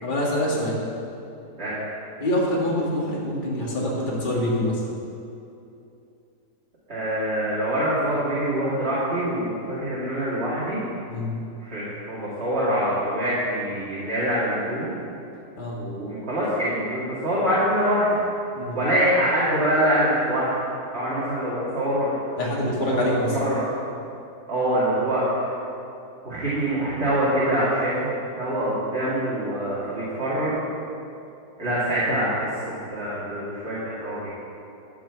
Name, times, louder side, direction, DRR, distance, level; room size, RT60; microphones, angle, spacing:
voice 1, 0.0-0.8 2.2-4.8 11.1-11.3 15.6-15.8 18.5-18.8 22.4-23.4 31.6-31.8, left 1 dB, 30° left, -4 dB, 2.0 m, -25 dB
voice 2, 6.9-10.8 11.6-14.9 15.8-18.1 18.7-20.5 20.9-22.1 22.9-23.6 24.5-25.5 26.2-30.7 31.6-34.3, right 1 dB, 40° right, -10 dB, 2.4 m, -25 dB
12.0 x 6.3 x 7.0 m, 2.7 s
omnidirectional pair, 1.8 m